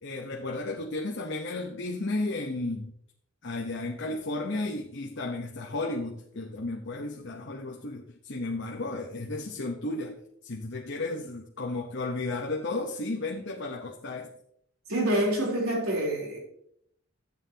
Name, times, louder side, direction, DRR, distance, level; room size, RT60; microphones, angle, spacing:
voice 1, 0.0-2.9 3.4-14.3, left 2 dB, 60° left, 1.1 m, -33 dB
voice 2, 14.9-16.4, right 1 dB, 85° right, 3.8 m, -26 dB
12.5 x 9.0 x 2.9 m
head